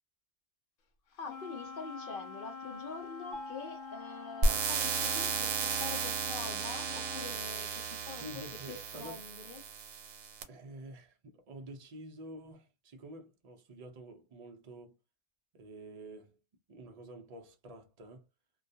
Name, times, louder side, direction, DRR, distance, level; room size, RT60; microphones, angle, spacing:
Wind instrument woodwind instrument, 1.2-7.4, left 5 dB, 80° left, 1.0 m, -46 dB
voice 1, 1.2-9.6, left 4 dB, 60° left, 0.6 m, -45 dB
Mallet percussion, 3.3-5.3, left 1 dB, 30° left, 0.9 m, -49 dB
sound 1, 4.4-10.4, right 4 dB, 85° right, 1.0 m, -34 dB
voice 2, 8.2-9.2 10.4-15.0 15.5-16.4 16.7-18.3, right 1 dB, 65° right, 0.3 m, -49 dB
2.2 x 2.2 x 2.6 m
omnidirectional pair, 1.3 m